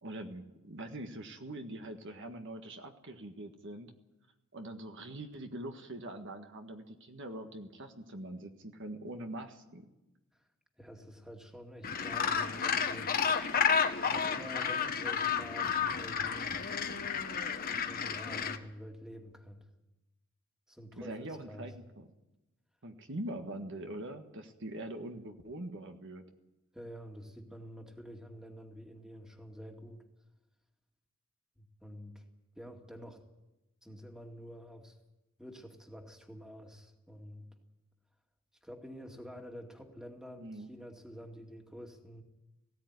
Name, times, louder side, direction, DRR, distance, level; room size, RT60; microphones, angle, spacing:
voice 1, 0.0-3.9 4.5-9.9 20.9-22.1 22.8-26.2 40.4-40.7, right 1 dB, 55° right, 5 dB, 1.6 m, -43 dB
voice 2, 10.8-13.2 14.0-16.6 17.7-19.7 20.7-21.7 26.7-30.0 31.6-32.2 32.6-33.2 33.8-34.9 35.4-37.5 38.6-42.2, equal, 5° right, 3 dB, 2.2 m, -48 dB
Gull seagull, 11.8-18.6, left 6 dB, 40° left, 1.2 m, -31 dB
18.5 x 16.5 x 9.5 m, 0.99 s
head